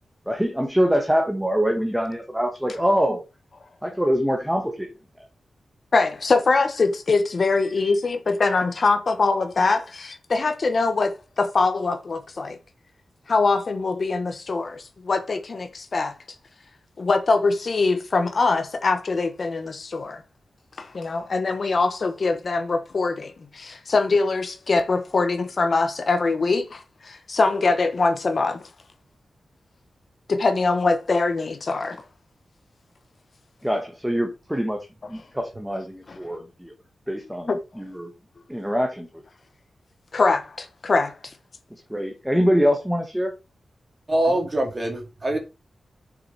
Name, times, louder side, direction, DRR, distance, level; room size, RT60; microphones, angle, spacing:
voice 1, 0.3-3.2 3.8-4.9 33.6-36.7 37.1-38.1 38.5-39.1 41.9-43.3 44.3-44.4, equal, 5° right, 1.3 m, -24 dB
voice 2, 5.9-12.6 13.3-16.1 17.0-20.2 20.8-28.7 30.3-32.0 36.1-36.2 37.5-37.6 40.1-41.3, left 3 dB, 45° left, 1.1 m, -23 dB
voice 3, 44.1-45.4, right 1 dB, 25° right, 2.5 m, -23 dB
7.3 x 6.8 x 4.3 m
wide cardioid pair, 165°, 0 cm